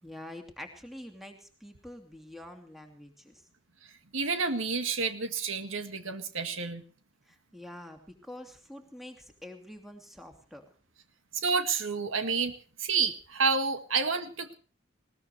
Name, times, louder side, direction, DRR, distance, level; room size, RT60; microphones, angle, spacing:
voice 1, 0.0-3.5 7.3-10.6, left 1 dB, ahead, 4 dB, 2.7 m, -46 dB
voice 2, 4.1-6.8 11.3-12.5 12.8-14.5, right 5 dB, 85° right, 8 dB, 1.9 m, -29 dB
20.0 x 19.5 x 3.2 m, 0.39 s
head